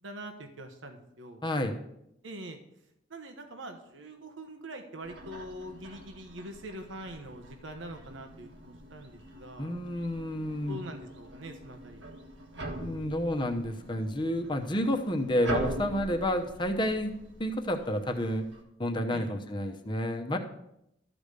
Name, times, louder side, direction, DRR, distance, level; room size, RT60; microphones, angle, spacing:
voice 1, 0.0-1.4 2.2-2.6 3.1-9.8 10.7-12.0 19.1-19.4, right 1 dB, 90° right, 5 dB, 1.1 m, -44 dB
voice 2, 1.4-1.8 9.6-10.8 12.8-17.1 17.4-18.5 18.8-20.4, left 1 dB, 25° left, 5 dB, 0.9 m, -30 dB
sound 1, 5.0-18.6, right 1 dB, 75° right, 1.5 m, -42 dB
13.0 x 5.0 x 6.7 m, 0.79 s
head